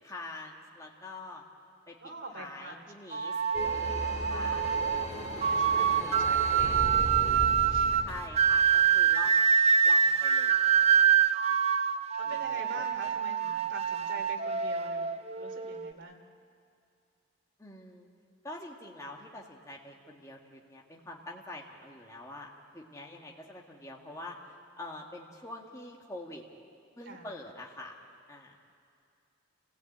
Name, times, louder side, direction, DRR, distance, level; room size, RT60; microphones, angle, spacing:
voice 1, 0.0-1.4 1.9-2.0 2.3-3.4 4.3-4.9 5.7-6.4 8.0-9.6 9.8-11.0 11.5-11.6 12.2-13.1 13.4-13.7 17.6-18.1 18.4-24.4 24.8-26.4 27.0-28.0 28.3-28.5, left 2 dB, 15° left, -1 dB, 1.7 m, -45 dB
voice 2, 2.0-2.9 5.4-6.8 7.2-8.0 12.2-16.2 27.0-27.3, right 2 dB, 65° right, 2 dB, 2.9 m, -44 dB
sound 1, 3.1-15.9, right 7 dB, 30° right, 0.5 m, -26 dB
sound 2, 3.5-9.3, left 1 dB, 35° left, 3.7 m, -37 dB
29.0 x 16.5 x 8.6 m, 2.5 s
head